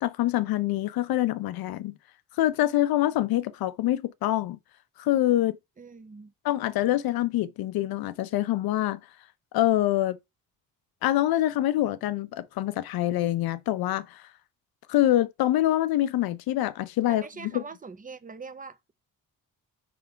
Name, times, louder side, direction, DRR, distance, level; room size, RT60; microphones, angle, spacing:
voice 1, 0.0-1.9 2.4-4.6 5.0-5.6 6.4-9.0 9.5-10.2 11.0-14.2 14.9-17.6, left 14 dB, 85° left, 0.7 m, -25 dB
voice 2, 5.8-6.3 17.0-18.9, right 5 dB, 25° right, 0.8 m, -43 dB
5.5 x 3.9 x 4.5 m
cardioid pair, 80°, 35 cm